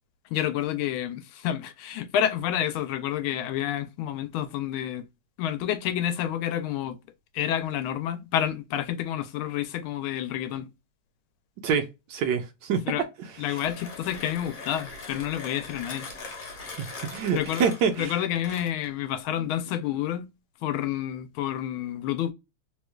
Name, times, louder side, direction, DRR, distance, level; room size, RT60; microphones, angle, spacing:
voice 1, 0.3-5.0 5.4-7.0 7.3-10.7 12.9-13.0 13.4-16.1 17.3-17.6 17.9-20.3 20.6-22.3, left 11 dB, 90° left, 1.4 m, -29 dB
voice 2, 11.6-12.8 13.5-13.6 16.8-18.2, right 6 dB, 70° right, 1.1 m, -27 dB
Mechanisms, 13.3-19.0, left 3 dB, 50° left, 1.3 m, -41 dB
3.3 x 3.1 x 2.2 m
omnidirectional pair, 2.2 m